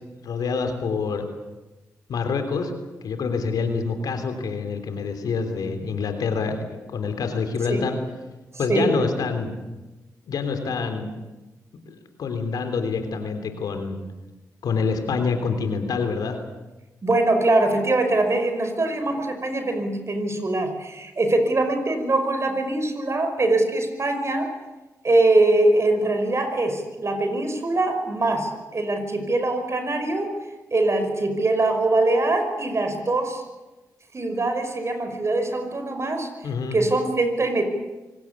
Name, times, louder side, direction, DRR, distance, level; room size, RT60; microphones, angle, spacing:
voice 1, 0.2-1.3 2.1-2.7 3.0-6.6 6.9-8.0 8.6-9.5 10.3-11.1 11.9-14.0 14.6-16.4 36.4-36.8, left 5 dB, 80° left, 7 dB, 3.4 m, -26 dB
voice 2, 8.5-8.9 17.0-24.5 25.0-30.3 30.7-33.4 34.1-36.3 36.7-37.6, right 2 dB, 45° right, 6 dB, 5.6 m, -22 dB
24.5 x 18.5 x 8.5 m, 1.1 s
supercardioid pair, 50°, 7 cm